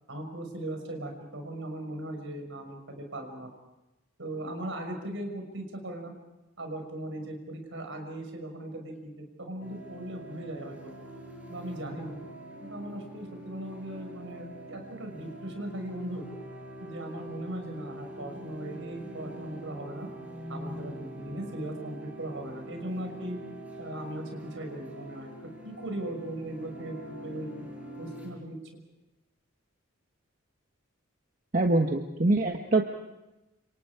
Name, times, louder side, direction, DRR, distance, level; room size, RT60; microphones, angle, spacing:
voice 1, 0.1-3.5 4.2-6.1 6.6-10.9 11.5-12.2 12.6-16.2 16.8-20.1 20.5-23.4 23.8-27.7 28.0-28.6, right 1 dB, 65° right, 4 dB, 6.0 m, -38 dB
sound 1, 9.6-28.3, right 1 dB, 5° right, 7.3 m, -44 dB
voice 2, 31.5-32.8, right 2 dB, 40° right, 3 dB, 1.4 m, -24 dB
30.0 x 27.5 x 4.9 m, 0.99 s
head